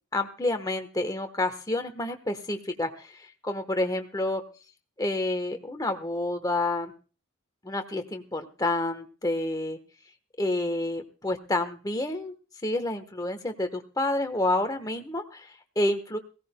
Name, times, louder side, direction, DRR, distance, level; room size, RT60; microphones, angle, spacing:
voice 1, 0.1-4.4 5.0-6.9 7.6-9.8 10.4-12.3 12.6-16.2, left 2 dB, 15° left, 6 dB, 1.2 m, -29 dB
21.5 x 16.5 x 2.2 m, 0.35 s
head